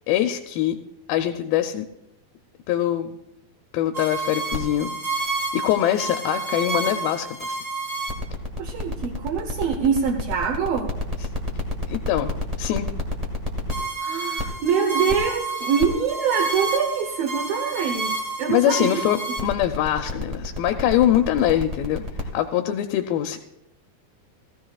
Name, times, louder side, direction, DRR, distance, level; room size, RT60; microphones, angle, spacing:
voice 1, 0.1-0.8 1.1-1.9 2.7-3.1 3.7-4.9 5.2-7.6 11.9-12.9 18.5-22.1 22.3-23.4, left 11 dB, 85° left, 7 dB, 2.4 m, -23 dB
sound 1, 3.9-22.2, right 1 dB, 35° right, 0.5 m, -29 dB
voice 2, 8.6-10.9 14.0-19.0 19.4-19.5, right 6 dB, 80° right, 2 dB, 2.8 m, -24 dB
17.0 x 15.0 x 2.4 m, 0.87 s
omnidirectional pair, 4.2 m